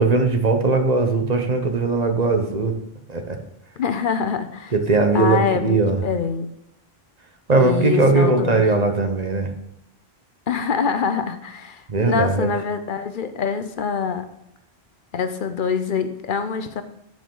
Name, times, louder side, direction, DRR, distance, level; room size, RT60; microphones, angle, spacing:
voice 1, 0.0-2.7 3.1-3.4 4.7-6.0 7.5-9.5 11.9-12.5, right 3 dB, 45° right, 5 dB, 0.9 m, -19 dB
voice 2, 3.8-4.7 5.1-6.5 7.6-8.6 10.5-14.2 15.1-16.8, left 6 dB, 60° left, 9 dB, 0.8 m, -25 dB
10.0 x 4.9 x 3.8 m, 0.79 s
omnidirectional pair, 1.1 m